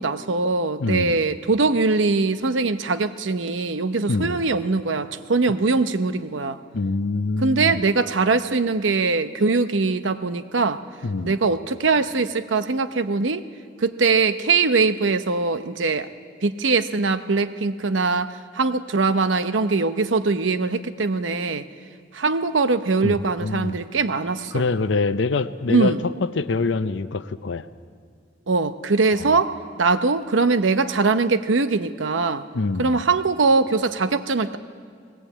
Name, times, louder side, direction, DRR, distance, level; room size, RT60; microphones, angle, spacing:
voice 1, 0.0-6.6 7.4-10.8 11.2-13.4 13.8-16.1 16.4-21.7 22.1-24.6 25.7-26.0 28.5-32.5 32.8-34.6, right 4 dB, 75° right, 11 dB, 0.8 m, -22 dB
voice 2, 0.8-1.2 4.1-4.4 6.7-7.8 11.0-11.4 23.0-23.8 24.5-27.6 29.2-29.4 32.5-33.0, left 3 dB, 70° left, 12 dB, 0.6 m, -25 dB
20.0 x 18.0 x 8.5 m, 2.3 s
head